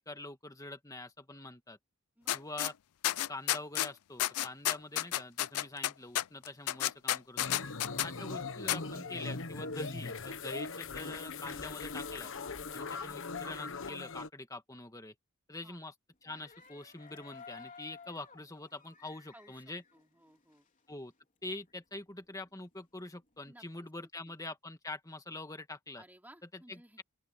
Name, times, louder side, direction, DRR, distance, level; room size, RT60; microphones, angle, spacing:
voice 1, 0.0-1.8 2.3-2.7 3.3-7.6 8.0-12.3 12.7-15.1 15.5-15.9 16.2-19.8 20.9-21.1 21.4-26.0 26.7-26.8, left 2 dB, 15° left, 1.9 m, -45 dB
sound 1, 2.3-2.7 3.0-3.9 4.2-8.1 8.7-8.8, left 13 dB, 85° left, 0.5 m, -31 dB
sound 2, 7.4-14.3, left 4 dB, 60° left, 1.2 m, -40 dB
sound 3, 16.3-20.9 21.2-21.3 21.5-23.3, left 5 dB, 35° left, 4.0 m, -55 dB
voice 2, 19.3-20.7 23.4-24.3 26.0-27.0, right 1 dB, 10° right, 4.2 m, -59 dB
open air
head